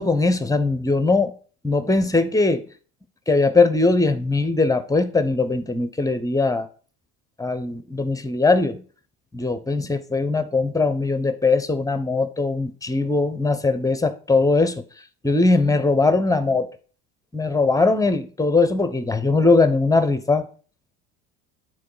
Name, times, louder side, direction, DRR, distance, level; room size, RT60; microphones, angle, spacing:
voice 1, 0.0-1.3 1.6-2.6 3.3-6.7 7.4-8.8 9.3-14.8 15.2-16.7 17.3-20.5, left 3 dB, 10° left, 0.9 m, -20 dB
8.4 x 4.1 x 4.8 m
hypercardioid pair, 80°, 39 cm